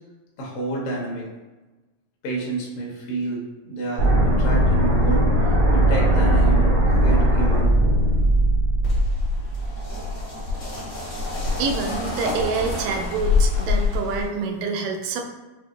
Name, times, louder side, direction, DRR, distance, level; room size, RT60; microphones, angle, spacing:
voice 1, 0.4-1.3 2.2-7.8, right 3 dB, 75° left, -3 dB, 1.3 m, -29 dB
sound 1, 4.0-10.0, right 1 dB, 70° right, 1.0 m, -19 dB
sound 2, 8.8-14.2, left 4 dB, 90° left, 0.6 m, -25 dB
voice 2, 11.6-15.2, right 4 dB, 85° right, 3 dB, 2.2 m, -27 dB
5.8 x 2.7 x 2.5 m, 1.2 s
omnidirectional pair, 3.8 m